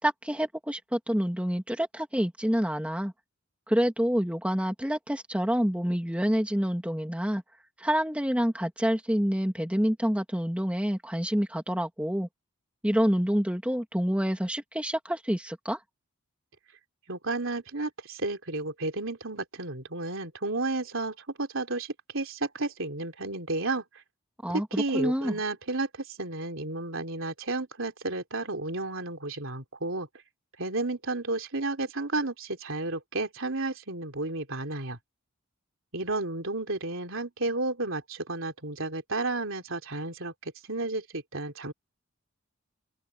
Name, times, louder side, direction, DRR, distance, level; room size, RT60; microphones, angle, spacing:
voice 1, 0.0-3.1 3.7-7.4 7.8-12.3 12.8-15.8 24.4-25.4, equal, 5° right, 2.3 m, -27 dB
voice 2, 17.1-23.8 24.5-30.1 30.6-35.0 35.9-41.7, right 2 dB, 60° right, 3.6 m, -32 dB
open air
head